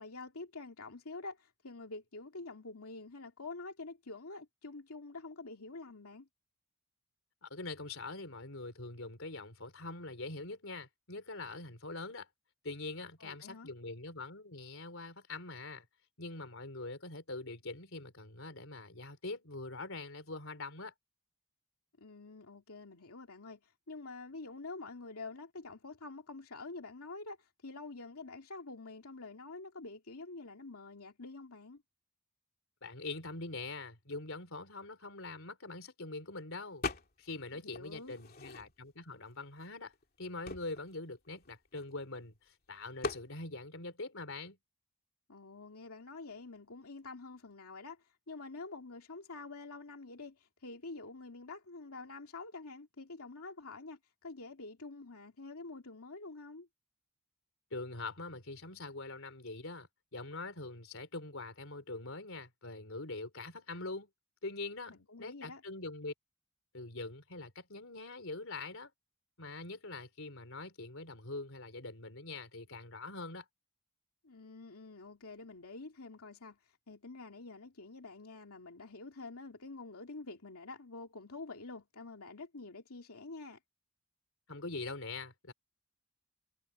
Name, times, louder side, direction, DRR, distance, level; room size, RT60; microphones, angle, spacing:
voice 1, 0.0-6.3 13.2-13.7 22.0-31.8 37.5-38.1 45.3-56.7 64.9-65.6 74.2-83.6, left 3 dB, 85° left, 2.5 m, -47 dB
voice 2, 7.4-12.3 12.6-15.9 16.2-20.9 32.8-36.8 37.2-39.9 40.2-44.6 57.7-64.1 64.4-66.1 66.7-68.9 69.4-73.5 84.5-85.5, left 3 dB, 65° left, 4.3 m, -43 dB
sound 1, 36.8-37.4 37.7-39.0 39.6-39.7 39.9-42.2 43.0-43.3, left 3 dB, 45° left, 2.6 m, -41 dB
head